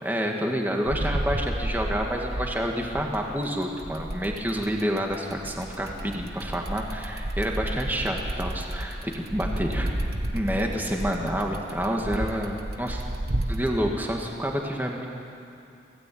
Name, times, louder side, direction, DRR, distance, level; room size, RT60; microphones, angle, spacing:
voice 1, 0.0-9.9 10.3-13.0 13.5-15.1, equal, 10° right, 1 dB, 2.0 m, -28 dB
sound 1, 0.9-3.3 3.8-13.7, right 1 dB, 60° right, 1.6 m, -32 dB
25.0 x 17.0 x 8.7 m, 2.6 s
head